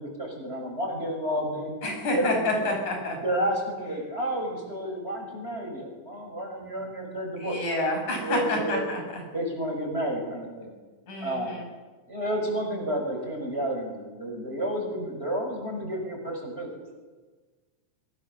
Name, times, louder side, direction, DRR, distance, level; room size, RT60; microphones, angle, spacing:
voice 1, 0.0-1.7 2.1-2.7 3.2-7.9 8.2-8.9 9.3-10.7 11.2-11.6 12.1-16.7, right 1 dB, 20° right, 1 dB, 6.3 m, -31 dB
voice 2, 1.8-3.2 7.4-9.2 11.1-11.6, left 1 dB, 80° left, 1 dB, 7.7 m, -28 dB
26.0 x 23.0 x 7.2 m, 1.3 s
omnidirectional pair, 3.4 m